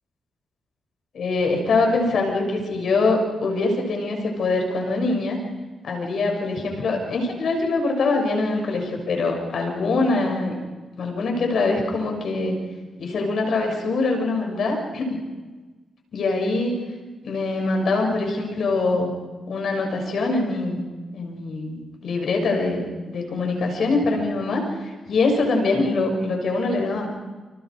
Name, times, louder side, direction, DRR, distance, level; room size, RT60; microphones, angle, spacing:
voice 1, 1.1-5.4 5.8-10.6 11.0-12.6 13.0-15.2 16.1-16.8 17.2-19.1 19.5-20.8 21.1-27.1, left 3 dB, 65° left, 2 dB, 6.7 m, -23 dB
29.5 x 27.0 x 4.9 m, 1.3 s
cardioid pair, 105°, 0 cm